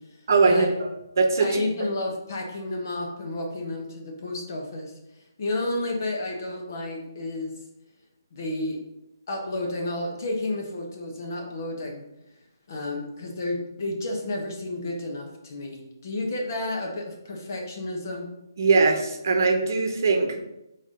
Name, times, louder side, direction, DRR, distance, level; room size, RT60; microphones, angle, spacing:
voice 1, 0.3-0.9 1.2-1.6 18.6-20.4, right 4 dB, 50° right, 4 dB, 0.9 m, -21 dB
voice 2, 1.4-4.9 5.4-7.5 8.3-8.8 9.3-12.0 12.7-18.3, left 2 dB, 45° left, 1 dB, 1.2 m, -31 dB
4.7 x 4.2 x 5.1 m, 0.89 s
hypercardioid pair, 170°, 2 cm